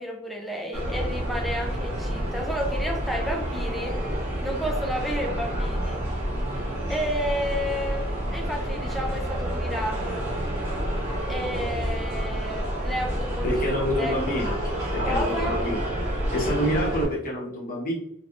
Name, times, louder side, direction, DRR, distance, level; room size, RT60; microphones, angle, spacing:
voice 1, 0.0-4.0 4.4-6.0 6.9-10.3 11.3-13.5 14.0-14.2 15.0-15.5, equal, ahead, 0 dB, 0.5 m, -31 dB
sound 1, 0.7-17.0, right 1 dB, 30° right, 1.3 m, -29 dB
voice 2, 13.4-14.6 14.9-15.8 16.3-17.9, equal, 40° left, -3 dB, 1.1 m, -27 dB
3.4 x 3.0 x 2.5 m, 0.71 s
head